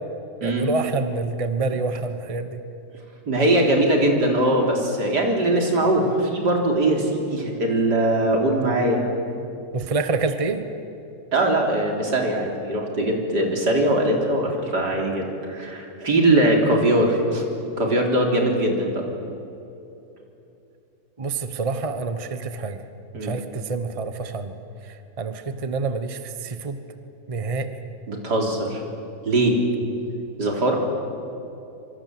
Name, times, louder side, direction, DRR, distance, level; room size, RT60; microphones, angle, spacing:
voice 1, 0.4-2.6 9.7-10.6 21.2-22.8 23.2-24.5 25.2-26.8 27.3-27.7, right 4 dB, 25° right, 9 dB, 1.2 m, -27 dB
voice 2, 3.3-9.1 11.3-17.4 17.8-19.0 23.1-23.3 28.1-28.8 29.2-29.6 30.4-30.8, right 1 dB, 80° right, 1 dB, 4.3 m, -21 dB
26.0 x 24.5 x 7.9 m, 2.9 s
omnidirectional pair, 1.8 m